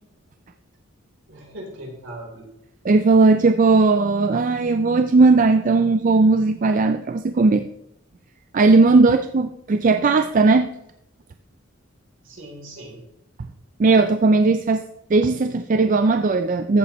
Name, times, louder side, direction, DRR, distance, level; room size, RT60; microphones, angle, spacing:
voice 1, 1.3-2.5 12.2-13.0, right 1 dB, 70° right, -1 dB, 3.6 m, -39 dB
voice 2, 2.9-7.7 8.5-10.7 13.8-14.8 15.1-16.8, right 3 dB, 40° right, 8 dB, 0.4 m, -17 dB
14.0 x 8.0 x 3.1 m, 0.83 s
head